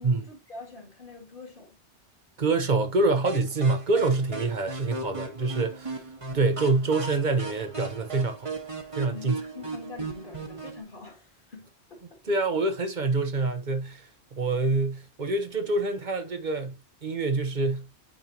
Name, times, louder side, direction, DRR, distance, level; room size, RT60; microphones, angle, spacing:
voice 1, 0.0-1.8 9.1-12.2, left 3 dB, 50° left, 2.6 m, -44 dB
voice 2, 2.4-6.0 6.3-8.5 8.9-9.3 12.3-16.7 17.0-17.8, right 3 dB, 45° right, 1.0 m, -26 dB
sound 1, 3.3-10.8, right 3 dB, 30° right, 1.3 m, -37 dB
9.1 x 4.4 x 2.9 m
omnidirectional pair, 1.1 m